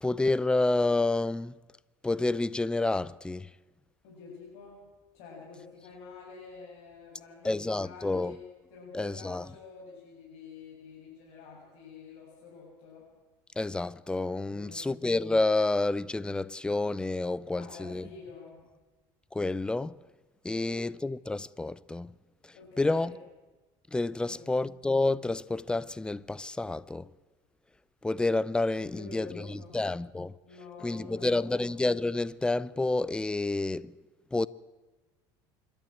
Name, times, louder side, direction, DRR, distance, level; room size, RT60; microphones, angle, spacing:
voice 1, 0.0-1.6 2.0-3.5 7.4-8.4 8.9-9.5 13.6-18.1 19.3-20.0 20.4-22.1 22.4-23.1 23.9-27.1 28.0-30.3 30.8-33.9 34.3-34.5, left 2 dB, 10° left, 0.6 m, -29 dB
voice 2, 4.0-4.8 5.1-8.4 8.7-13.1 14.4-14.9 17.5-18.6 20.5-20.8 22.5-23.2 24.2-24.5 28.8-29.8 30.4-31.6, left 4 dB, 70° left, 7.2 m, -48 dB
26.5 x 12.5 x 9.0 m
supercardioid pair, 115°, 11 cm